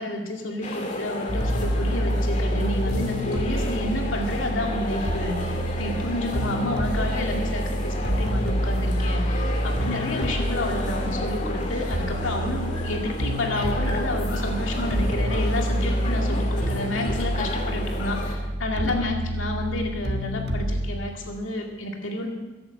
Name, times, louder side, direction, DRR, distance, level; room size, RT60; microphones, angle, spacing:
voice 1, 0.0-22.3, left 1 dB, 85° left, 1 dB, 2.2 m, -30 dB
sound 1, 0.6-18.4, left 1 dB, 40° left, 2.1 m, -33 dB
sound 2, 1.3-21.0, equal, 55° right, 1.4 m, -27 dB
sound 3, 12.3-18.2, left 2 dB, 65° left, 4.9 m, -46 dB
15.0 x 11.0 x 6.4 m, 1.2 s
head